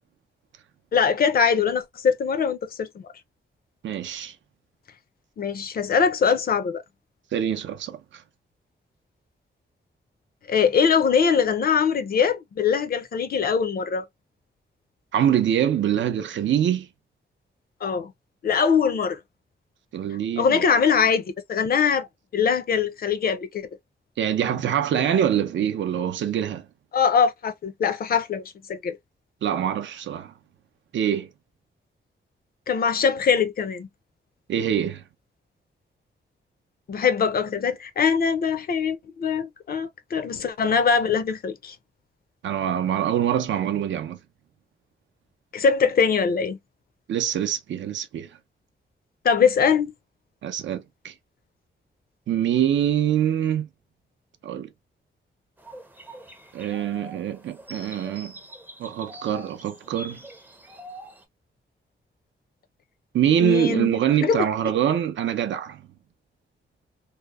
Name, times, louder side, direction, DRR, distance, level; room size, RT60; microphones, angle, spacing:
voice 1, 0.9-2.9 5.4-6.8 10.5-14.1 17.8-18.1 18.4-19.2 20.4-22.1 22.3-23.7 26.9-28.4 28.7-29.0 32.7-33.9 36.9-41.8 45.5-46.6 49.2-49.9 63.4-64.0 64.2-64.4, left 6 dB, 50° left, 0.5 m, -22 dB
voice 2, 3.8-4.3 7.3-8.2 15.1-16.9 19.9-20.6 24.2-26.7 29.4-30.3 30.9-31.3 34.5-35.0 42.4-44.2 47.1-48.3 50.4-51.1 52.3-53.7 54.4-54.7 56.5-58.3 58.8-60.2 63.1-65.8, right 9 dB, 75° right, 0.5 m, -24 dB
sound 1, 55.6-61.2, equal, 10° right, 0.5 m, -44 dB
2.7 x 2.0 x 2.2 m
wide cardioid pair, 155°, 20 cm